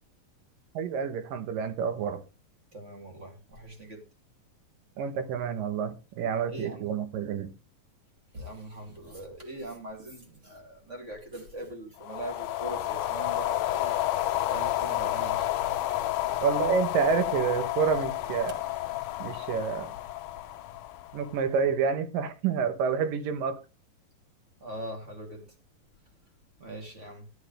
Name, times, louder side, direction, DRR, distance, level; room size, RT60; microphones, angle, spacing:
voice 1, 0.7-2.2 5.0-7.5 16.4-18.6 19.2-19.9 21.1-23.6, right 6 dB, 80° right, 2.8 m, -28 dB
voice 2, 2.7-4.0 6.5-7.0 8.3-14.0 14.5-15.5 24.6-25.5 26.6-27.3, right 1 dB, 20° right, 2.5 m, -41 dB
sound 1, 12.0-21.5, left 14 dB, 85° left, 1.5 m, -30 dB
13.0 x 9.5 x 3.3 m
omnidirectional pair, 4.0 m